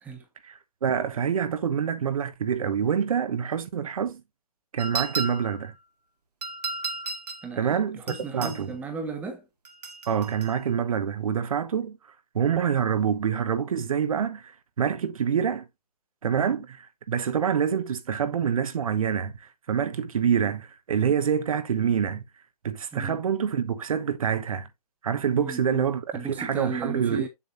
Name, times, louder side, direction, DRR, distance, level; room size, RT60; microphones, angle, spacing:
voice 1, 0.4-4.2 4.7-5.7 7.6-8.0 8.3-8.7 10.1-12.0 12.3-15.7 16.2-22.2 22.6-24.7 25.0-27.3, right 7 dB, 60° right, 1.0 m, -26 dB
sound 1, 4.8-5.6 6.4-7.5 8.1-8.6 9.6-10.6, right 4 dB, 80° right, 2.0 m, -34 dB
voice 2, 7.4-9.4 22.9-23.2 25.3-25.8 26.1-27.3, right 4 dB, 5° right, 1.2 m, -35 dB
7.3 x 6.3 x 2.6 m
hypercardioid pair, 150°, 20 cm